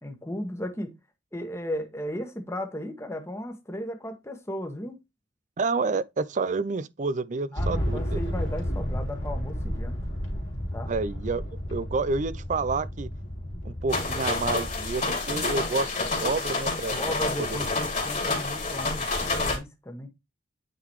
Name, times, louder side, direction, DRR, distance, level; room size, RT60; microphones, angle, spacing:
voice 1, 0.0-0.9 1.3-5.0 7.5-10.0 10.7-10.9 15.3-15.5 16.9-20.1, equal, 15° left, 1.4 m, -35 dB
voice 2, 5.6-8.2 10.9-13.1 13.6-15.9 16.2-16.9, right 3 dB, 40° right, 0.5 m, -29 dB
sound 1, 7.6-15.0, equal, 75° left, 2.6 m, -32 dB
sound 2, 13.9-19.6, left 3 dB, 40° left, 2.7 m, -28 dB
9.0 x 3.9 x 3.1 m
head